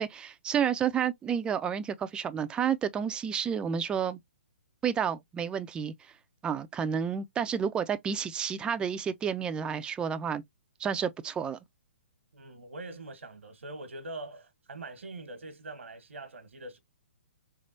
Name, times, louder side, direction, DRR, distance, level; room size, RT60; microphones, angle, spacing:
voice 1, 0.0-4.2 4.8-6.1 6.4-10.4 10.8-11.6, right 7 dB, 15° right, 0.4 m, -30 dB
voice 2, 12.3-16.8, right 2 dB, 80° right, 1.2 m, -43 dB
3.5 x 3.4 x 2.5 m
hypercardioid pair, 130°, 7 cm